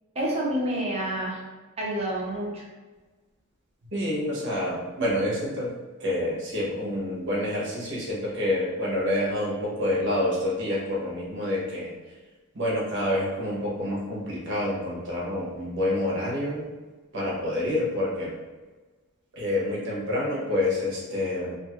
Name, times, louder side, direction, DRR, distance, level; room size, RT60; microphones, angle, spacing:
voice 1, 0.1-1.4 1.8-2.6, right 1 dB, 30° right, -4 dB, 0.7 m, -28 dB
voice 2, 3.9-5.7 6.0-11.9 12.5-16.7 17.1-18.3 19.3-21.6, left 1 dB, 55° right, -5 dB, 0.9 m, -27 dB
2.6 x 2.4 x 2.8 m, 1.3 s
head